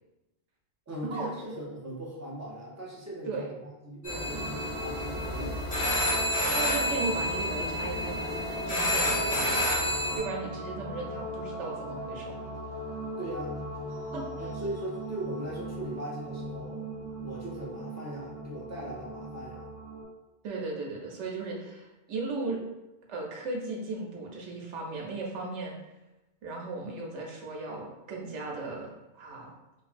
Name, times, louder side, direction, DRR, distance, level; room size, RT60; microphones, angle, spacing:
voice 1, 0.9-5.6 13.2-13.6 14.4-16.8 17.2-19.7, right 1 dB, 25° right, -5 dB, 0.4 m, -39 dB
sound 1, 4.0-10.2, left 1 dB, 40° left, 0.9 m, -29 dB
sound 2, 4.3-20.0, equal, 15° left, 0.9 m, -39 dB
voice 2, 6.5-9.7 10.2-12.4 14.1-14.5 20.4-22.6 23.1-25.7 26.4-29.5, right 3 dB, 90° right, -1 dB, 0.9 m, -36 dB
3.1 x 2.3 x 2.4 m, 1.0 s
omnidirectional pair, 1.2 m